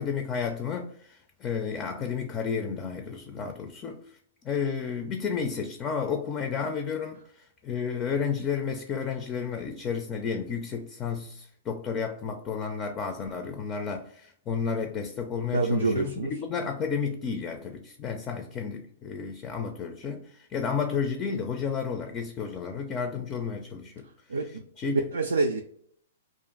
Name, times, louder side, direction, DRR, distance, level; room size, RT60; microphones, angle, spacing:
voice 1, 0.0-4.1 4.4-24.1 24.5-25.1, left 6 dB, 30° left, 0.4 m, -32 dB
voice 2, 15.5-16.3 24.3-24.6 24.9-25.6, right 3 dB, 80° right, 0.3 m, -26 dB
2.5 x 2.4 x 3.8 m
hypercardioid pair, 115°, 0 cm